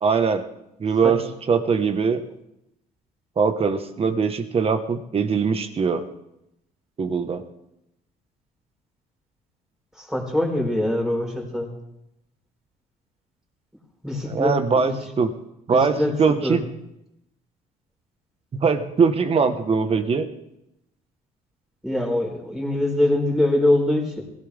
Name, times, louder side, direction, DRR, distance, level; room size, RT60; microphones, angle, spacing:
voice 1, 0.0-0.5 0.8-1.2 1.5-2.2 3.4-6.1 7.0-7.4 14.2-15.3 15.7-16.6 18.5-20.3, right 5 dB, 35° right, 8 dB, 1.5 m, -21 dB
voice 2, 10.0-11.7 14.0-15.0 15.7-16.1 16.4-16.6 21.8-24.2, left 1 dB, 5° right, 0 dB, 4.7 m, -23 dB
20.0 x 17.0 x 3.7 m, 0.84 s
cardioid pair, 110°, 17 cm